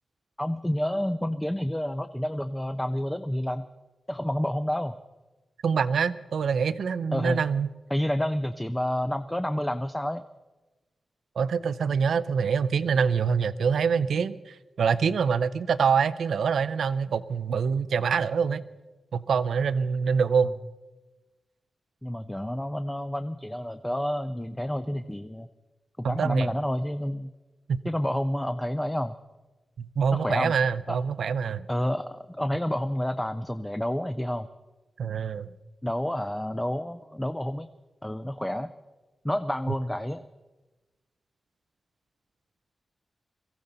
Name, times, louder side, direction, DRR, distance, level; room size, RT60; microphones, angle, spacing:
voice 1, 0.4-3.6 4.1-5.0 7.1-7.4 7.9-10.2 22.0-25.5 26.0-27.3 27.8-29.2 30.1-30.5 30.9-31.0 31.7-34.5 35.8-37.7 38.0-38.7 39.2-40.3, left 1 dB, 5° left, 10 dB, 0.4 m, -29 dB
voice 2, 5.6-7.7 11.4-18.6 19.1-20.5 26.0-26.5 27.7-27.8 29.8-31.7 35.0-35.5, right 6 dB, 85° right, 15 dB, 0.6 m, -25 dB
23.0 x 15.0 x 4.0 m, 1.2 s
wide cardioid pair, 165°, 0 cm